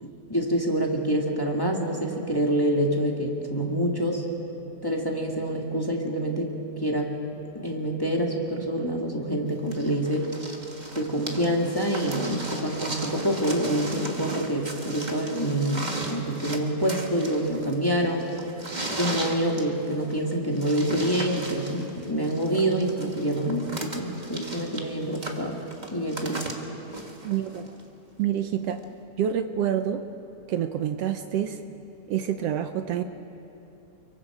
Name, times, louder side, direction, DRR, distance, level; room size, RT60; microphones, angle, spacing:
voice 1, 0.0-4.2 4.8-6.5 6.8-7.1 7.6-10.3 10.9-18.3 18.9-25.6 25.9-26.5, right 1 dB, 10° left, 0 dB, 1.1 m, -26 dB
sound 1, 9.7-27.8 28.8-28.9, right 2 dB, 25° right, 0.9 m, -36 dB
voice 2, 27.2-27.7 28.2-28.8 29.2-30.0 30.5-31.6 32.1-33.0, right 10 dB, 70° right, 8 dB, 1.5 m, -27 dB
29.5 x 23.0 x 4.9 m, 2.9 s
omnidirectional pair, 3.4 m